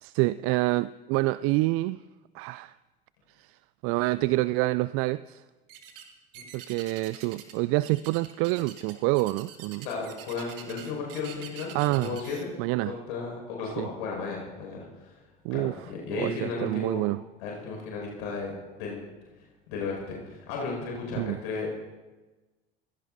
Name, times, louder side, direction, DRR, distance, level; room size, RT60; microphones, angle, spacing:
voice 1, 0.0-2.0 2.3-2.8 3.4-3.6 3.8-5.4 6.5-9.9 11.7-12.2 12.6-12.9 13.8-13.9 15.4-15.7 16.1-17.2 21.2-21.4, right 20 dB, 50° right, 0.4 m, -27 dB
sound 1, 5.7-6.1 6.3-7.6 7.8-12.4, right 9 dB, 70° right, 1.9 m, -45 dB
voice 2, 9.8-11.7 12.0-12.5 12.8-15.2 15.5-17.0 17.4-19.1 19.7-21.8, left 4 dB, 65° left, 5.8 m, -34 dB
28.0 x 16.5 x 2.7 m
figure-of-eight pair, 65°, 29 cm